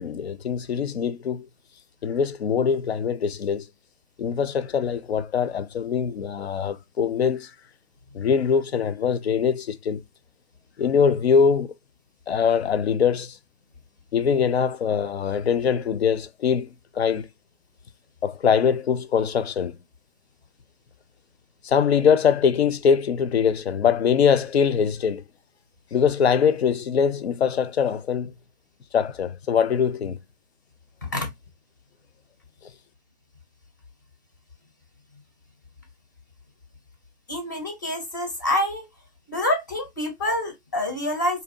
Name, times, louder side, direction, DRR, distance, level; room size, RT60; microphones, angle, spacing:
voice 1, 0.0-1.5 2.0-3.7 4.2-7.5 8.1-10.0 10.8-11.7 12.3-13.4 14.1-17.3 18.2-19.8 21.6-25.2 25.9-28.3 28.9-30.2, left 7 dB, 70° left, 0.5 m, -22 dB
voice 2, 37.3-38.9 39.3-41.4, left 1 dB, 20° left, 0.5 m, -27 dB
2.6 x 2.2 x 2.5 m
figure-of-eight pair, 150°, 33 cm